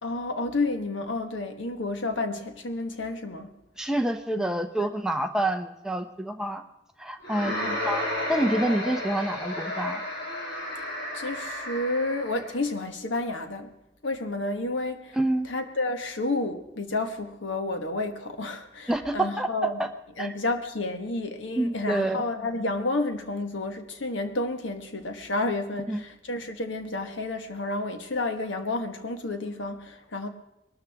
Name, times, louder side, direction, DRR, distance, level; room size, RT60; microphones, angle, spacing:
voice 1, 0.0-3.5 4.4-4.5 4.8-4.9 7.5-7.8 11.1-13.7 14.0-15.2 15.4-19.8 20.2-30.3, left 2 dB, 90° left, 1.4 m, -30 dB
voice 2, 3.8-6.6 7.0-8.0 8.3-10.0 15.1-15.5 18.9-19.5 19.8-19.9 20.2-20.3 21.6-22.2 25.9-26.0, right 1 dB, 5° right, 0.7 m, -27 dB
sound 1, 7.2-12.6, left 1 dB, 55° left, 3.3 m, -32 dB
22.0 x 13.0 x 3.5 m
head